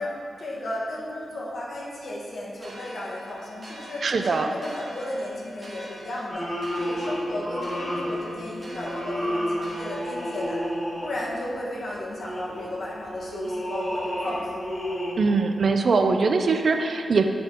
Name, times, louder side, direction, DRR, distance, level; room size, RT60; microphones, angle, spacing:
voice 1, 0.0-10.6 11.0-15.0, left 1 dB, 65° left, -4 dB, 1.4 m, -34 dB
sound 1, 2.6-10.8, equal, 30° right, 1.3 m, -45 dB
voice 2, 4.0-4.5 15.2-17.2, right 4 dB, 60° right, 6 dB, 0.4 m, -22 dB
sound 2, 6.3-11.5 12.0-15.1, equal, 30° left, 1.5 m, -31 dB
8.8 x 4.6 x 3.7 m, 2.3 s
wide cardioid pair, 110°, 0 cm